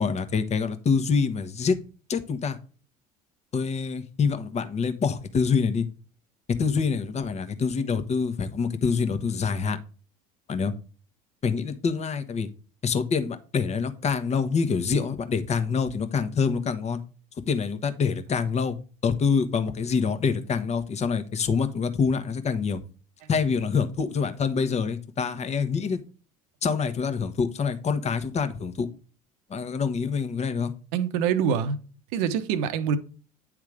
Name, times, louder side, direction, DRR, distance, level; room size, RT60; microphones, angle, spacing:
voice 1, 0.0-1.8 2.1-2.6 3.5-5.9 6.6-9.8 10.5-10.7 11.4-12.5 12.8-17.0 17.5-22.8 23.3-26.0 26.6-28.9 29.5-30.7, left 5 dB, 35° left, 1.2 m, -26 dB
voice 2, 30.9-31.8 32.1-33.0, right 7 dB, 70° right, 0.9 m, -25 dB
9.4 x 3.6 x 4.9 m
hypercardioid pair, 70°, 20 cm